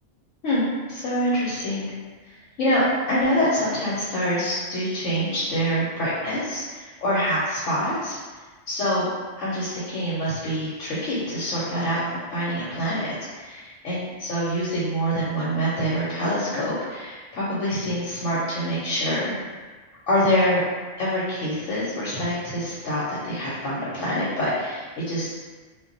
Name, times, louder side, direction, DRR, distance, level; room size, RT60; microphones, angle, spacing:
voice 1, 0.4-1.9 2.3-8.2 8.7-9.1 9.4-19.4 20.1-20.6 21.0-25.3, equal, 90° left, -9 dB, 1.1 m, -25 dB
2.2 x 2.2 x 3.8 m, 1.4 s
omnidirectional pair, 1.2 m